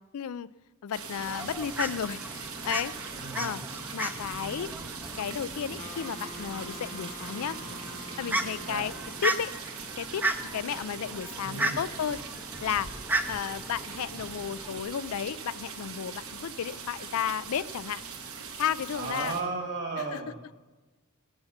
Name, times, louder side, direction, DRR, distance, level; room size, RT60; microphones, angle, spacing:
voice 1, 0.1-0.5 0.8-3.6 3.9-4.7 5.2-7.6 8.2-8.9 9.2-9.5 10.0-10.3 10.5-12.2 12.6-12.9 13.3-18.0 18.6-19.4 20.0-20.2, left 8 dB, 75° left, 17 dB, 0.4 m, -33 dB
sound 1, 0.9-19.4, right 5 dB, 75° right, 1.4 m, -41 dB
Fowl, 1.2-14.8, right 2 dB, 10° right, 0.5 m, -36 dB
voice 2, 3.1-3.6 7.6-7.7 8.6-8.9 11.4-11.8 13.2-13.3 18.9-20.4, right 3 dB, 50° right, 4 dB, 2.0 m, -35 dB
Wind instrument woodwind instrument, 5.8-9.6, left 3 dB, 35° left, 1.0 m, -45 dB
18.0 x 6.7 x 5.8 m, 1.2 s
head